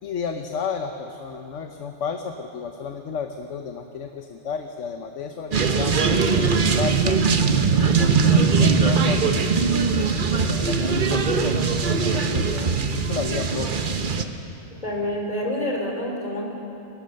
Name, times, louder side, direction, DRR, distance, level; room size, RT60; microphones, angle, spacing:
voice 1, 0.0-7.2 7.9-9.4 10.3-13.8, left 6 dB, 90° left, 5 dB, 1.2 m, -32 dB
sound 1, 5.5-14.2, right 5 dB, 45° right, 1.1 m, -21 dB
voice 2, 14.8-16.5, left 1 dB, 35° left, -1 dB, 3.5 m, -27 dB
22.5 x 18.0 x 6.5 m, 3.0 s
omnidirectional pair, 1.2 m